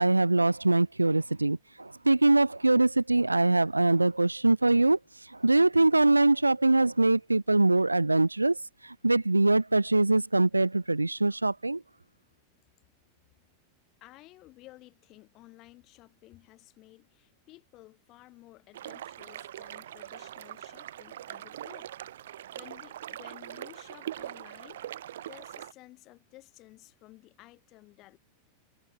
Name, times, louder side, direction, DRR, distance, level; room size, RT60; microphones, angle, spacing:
voice 1, 0.0-5.0 5.3-8.6 8.8-11.8, right 2 dB, 85° right, 0.5 m, -23 dB
voice 2, 14.0-21.9 22.5-24.8 25.2-28.2, left 18 dB, 40° left, 5.9 m, -54 dB
sound 1, 18.7-25.7, right 12 dB, 60° right, 3.4 m, -42 dB
figure-of-eight pair, 90°, 0 cm